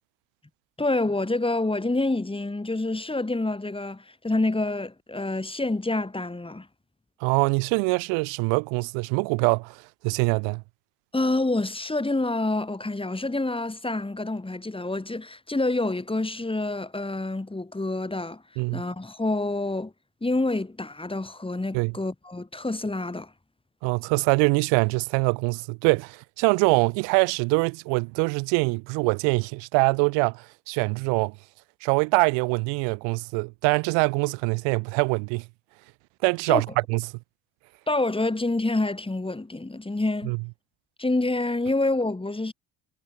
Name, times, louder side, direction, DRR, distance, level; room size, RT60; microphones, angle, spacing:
voice 1, 0.8-6.7 11.1-18.4 18.7-19.9 20.2-23.3 36.5-36.6 37.9-40.3 41.0-42.5, left 2 dB, 10° left, 6.0 m, -27 dB
voice 2, 7.2-9.8 10.0-10.6 18.6-18.8 21.7-21.9 23.8-31.3 31.8-35.4 36.2-37.0 40.3-40.4, right 33 dB, 90° right, 1.8 m, -24 dB
supercardioid pair, 90°, 43 cm